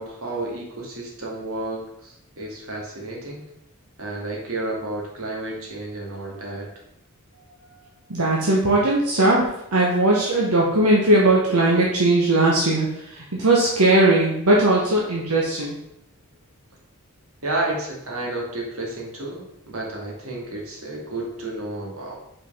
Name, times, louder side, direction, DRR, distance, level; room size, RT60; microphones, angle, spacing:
voice 1, 0.0-3.4 4.0-6.7 8.8-8.9 17.4-22.2, right 2 dB, 65° right, -2 dB, 2.2 m, -31 dB
voice 2, 8.1-15.8, right 2 dB, 85° right, -4 dB, 1.3 m, -19 dB
5.4 x 5.2 x 5.6 m, 0.79 s
head